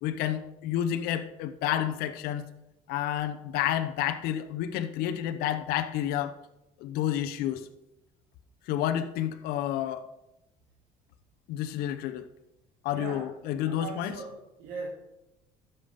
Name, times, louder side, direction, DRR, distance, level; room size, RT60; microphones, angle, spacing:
voice 1, 0.0-2.4 2.9-6.4 6.8-7.7 8.7-10.1 11.5-12.3 12.8-14.1, left 11 dB, 75° left, 8 dB, 0.8 m, -30 dB
voice 2, 12.9-13.3 13.6-14.9, right 4 dB, 80° right, -3 dB, 2.1 m, -39 dB
11.5 x 7.0 x 5.2 m, 0.91 s
supercardioid pair, 95°, 16 cm